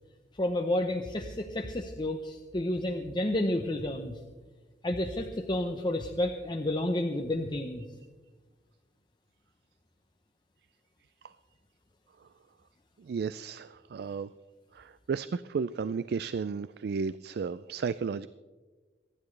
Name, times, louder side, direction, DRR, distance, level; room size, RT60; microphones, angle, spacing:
voice 1, 0.4-4.2 4.8-7.9, left 1 dB, 25° left, 4 dB, 0.8 m, -30 dB
voice 2, 13.0-14.3 14.7-18.3, right 5 dB, 60° right, 16 dB, 0.3 m, -33 dB
27.5 x 10.5 x 3.3 m, 1.3 s
head